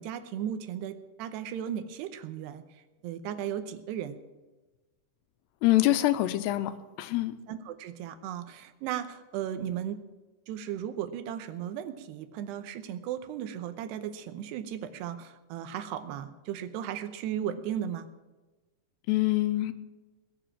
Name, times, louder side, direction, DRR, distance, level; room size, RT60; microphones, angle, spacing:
voice 1, 0.0-2.6 3.0-4.2 7.5-10.0 10.5-18.1, right 10 dB, 80° right, 10 dB, 2.9 m, -36 dB
voice 2, 5.6-7.4 19.1-19.7, left 15 dB, 90° left, 11 dB, 2.8 m, -25 dB
21.0 x 7.1 x 7.4 m, 1.2 s
omnidirectional pair, 4.8 m